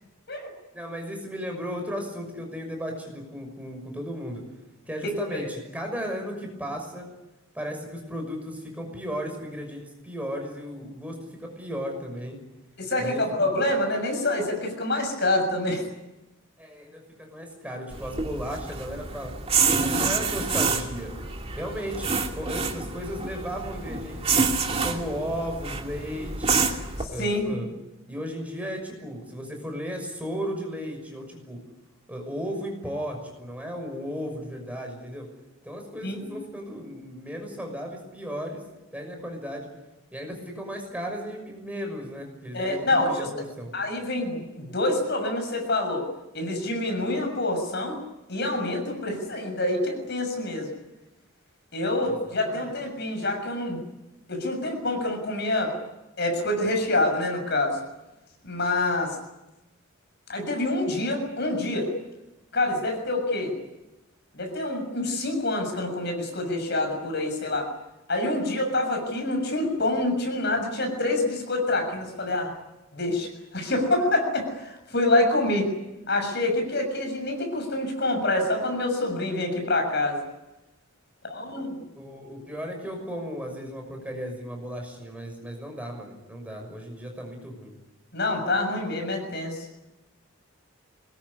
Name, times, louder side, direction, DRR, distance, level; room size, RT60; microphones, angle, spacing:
voice 1, 0.7-4.4 4.9-7.0 7.5-12.4 13.0-13.5 16.6-19.3 19.7-21.1 21.5-24.2 24.8-26.7 27.1-27.7 28.1-31.6 32.1-35.3 35.6-38.6 38.9-39.7 40.1-43.7 52.0-52.7 81.9-87.7, equal, 5° right, 2 dB, 6.1 m, -35 dB
voice 2, 12.8-15.8 27.2-27.6 36.0-36.3 42.5-43.3 43.7-46.1 46.3-48.0 48.3-50.7 51.7-53.8 54.3-55.7 56.2-57.8 58.4-59.1 60.3-61.9 62.5-63.6 64.3-67.7 68.1-72.5 72.9-75.7 76.1-80.2 81.2-81.8 88.1-89.6, left 2 dB, 55° left, 4 dB, 6.8 m, -26 dB
sound 1, 17.9-27.0, right 5 dB, 30° right, 2.7 m, -27 dB
25.0 x 21.0 x 9.8 m, 0.99 s
head